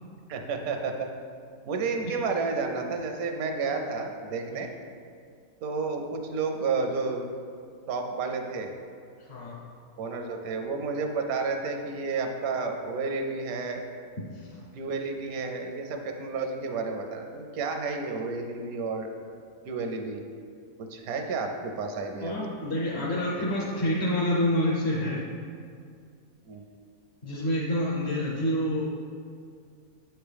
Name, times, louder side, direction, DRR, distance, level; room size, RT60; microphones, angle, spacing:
voice 1, 0.3-1.1 1.7-4.7 5.6-7.3 7.9-8.7 10.0-13.8 14.7-19.1 19.7-20.2 20.8-22.3 26.5-26.6, right 4 dB, 80° right, 4 dB, 1.1 m, -31 dB
voice 2, 9.2-9.6 14.2-14.6 22.2-25.2 27.2-28.9, left 1 dB, 50° left, -3 dB, 1.0 m, -28 dB
7.5 x 4.5 x 3.4 m, 2.3 s
omnidirectional pair, 1.5 m